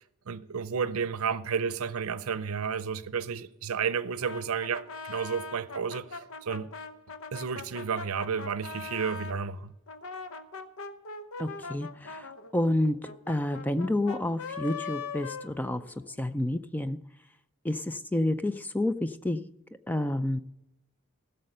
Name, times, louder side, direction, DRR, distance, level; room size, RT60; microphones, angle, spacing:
voice 1, 0.0-6.7 7.3-9.7, right 6 dB, 80° right, 0.6 m, -32 dB
Brass instrument, 4.2-9.4 9.9-16.2, left 4 dB, 75° left, 0.8 m, -41 dB
voice 2, 11.4-12.3 12.5-13.0 13.3-15.8 16.2-17.0 17.6-19.5 19.9-20.4, left 1 dB, 10° left, 0.4 m, -29 dB
15.5 x 6.6 x 6.6 m
head